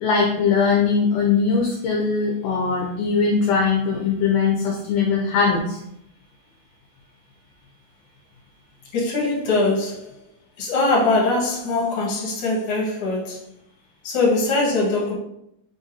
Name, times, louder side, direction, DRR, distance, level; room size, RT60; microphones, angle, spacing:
voice 1, 0.0-5.8, left 5 dB, 80° left, 0 dB, 1.9 m, -20 dB
voice 2, 8.9-10.2 10.6-13.4 14.0-15.1, left 2 dB, 50° left, -4 dB, 2.0 m, -22 dB
5.1 x 3.8 x 2.7 m, 0.78 s
omnidirectional pair, 4.1 m